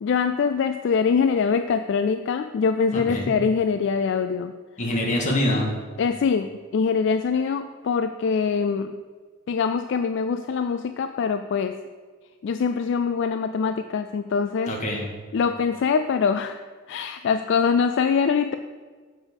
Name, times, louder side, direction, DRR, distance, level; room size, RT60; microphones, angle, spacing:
voice 1, 0.0-4.5 6.0-8.9 9.5-11.8 12.4-14.7 15.3-16.6 16.9-18.5, left 5 dB, 65° left, 9 dB, 0.3 m, -23 dB
voice 2, 2.9-3.3 4.8-5.7 14.7-15.0, left 1 dB, 40° left, -1 dB, 1.8 m, -24 dB
7.2 x 7.2 x 5.3 m, 1.5 s
head